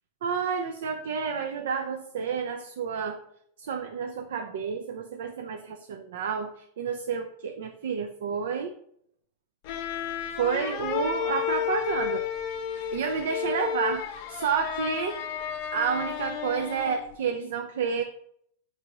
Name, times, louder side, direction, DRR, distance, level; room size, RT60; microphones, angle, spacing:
voice 1, 0.2-3.2 3.6-8.7 10.4-12.3 12.9-14.0 14.3-15.2 15.7-18.0, right 6 dB, 80° right, 5 dB, 0.4 m, -30 dB
sound 1, 9.6-17.1, left 9 dB, 55° left, 0.5 m, -32 dB
4.6 x 2.7 x 2.9 m, 0.69 s
supercardioid pair, 130°, 0 cm